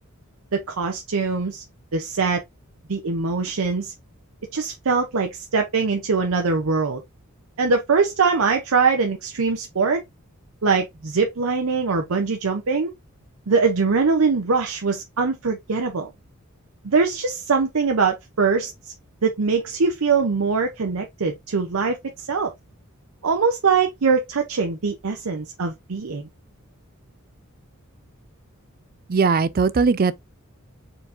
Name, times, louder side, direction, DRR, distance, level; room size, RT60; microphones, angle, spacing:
voice 1, 0.5-1.6 1.9-2.4 2.9-3.9 4.5-7.0 7.6-10.0 10.6-12.9 13.5-16.1 16.8-18.9 19.2-22.5 23.2-26.3, right 4 dB, 80° right, 0.7 m, -22 dB
voice 2, 29.1-30.1, right 4 dB, 45° right, 0.4 m, -19 dB
4.6 x 3.9 x 2.6 m
head